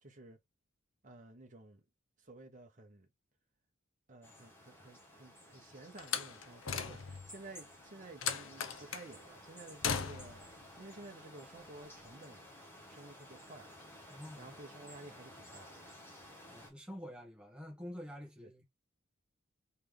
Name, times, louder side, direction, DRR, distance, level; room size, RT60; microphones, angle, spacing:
voice 1, 0.0-0.4 1.0-1.8 2.2-3.1 4.1-12.5 12.8-14.1 14.4-15.8 18.4-18.5, right 2 dB, 40° right, 1.1 m, -53 dB
sound 1, 4.2-16.7, left 1 dB, 10° left, 1.5 m, -55 dB
Slam, 6.0-7.3 8.2-9.1 9.8-10.5, left 7 dB, 80° left, 0.8 m, -37 dB
voice 2, 14.1-14.5 16.5-18.6, equal, 5° right, 1.6 m, -47 dB
4.2 x 3.3 x 3.5 m
head